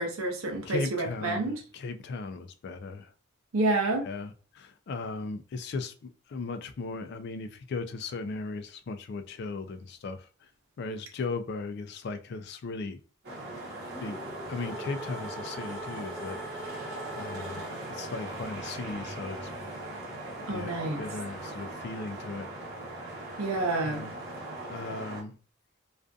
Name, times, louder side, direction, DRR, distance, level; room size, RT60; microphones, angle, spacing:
voice 1, 0.0-1.6 3.5-4.1 20.5-21.0 23.4-24.0, right 2 dB, 85° right, 0.7 m, -29 dB
voice 2, 0.7-3.1 4.1-10.2 10.8-13.0 14.0-14.2 14.5-16.4 17.2-17.6 18.0-19.5 20.5-22.5 23.8-24.1 24.7-25.3, left 3 dB, 55° left, 0.3 m, -37 dB
sound 1, 13.2-25.2, right 1 dB, 50° right, 0.8 m, -40 dB
sound 2, 13.8-18.0, right 1 dB, 5° left, 0.9 m, -42 dB
2.5 x 2.4 x 2.3 m
head